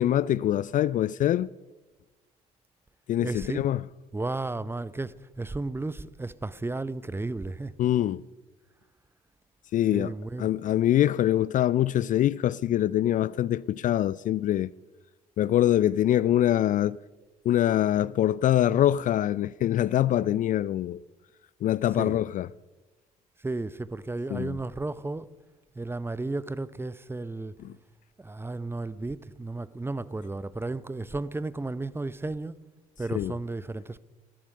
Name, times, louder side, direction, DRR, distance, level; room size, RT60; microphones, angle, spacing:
voice 1, 0.0-1.5 3.1-3.8 7.8-8.2 9.7-10.1 10.4-14.7 15.4-17.0 17.5-21.0 21.6-22.5 24.3-24.6 27.6-27.7 33.1-33.3, left 12 dB, 45° left, 0.4 m, -24 dB
voice 2, 3.2-3.6 4.1-7.7 9.9-10.5 22.0-22.2 23.4-25.3 25.8-27.5 28.2-32.6 33.0-34.0, right 2 dB, 10° right, 0.7 m, -33 dB
17.5 x 13.0 x 5.4 m
hypercardioid pair, 50°, 19 cm